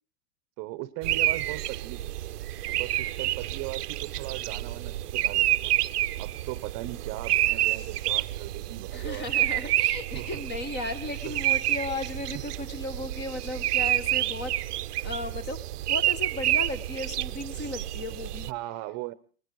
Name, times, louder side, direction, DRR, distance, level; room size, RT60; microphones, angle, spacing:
voice 1, 0.6-2.0 2.7-5.7 6.2-9.3 10.1-10.4 11.2-11.4 18.5-19.1, right 18 dB, 35° right, 15 dB, 1.0 m, -38 dB
sound 1, 1.0-18.5, right 14 dB, 85° right, 0.9 m, -29 dB
voice 2, 8.9-14.5 15.0-18.5, left 2 dB, 25° left, 13 dB, 1.6 m, -36 dB
20.0 x 15.0 x 4.8 m, 0.42 s
supercardioid pair, 140°, 45 cm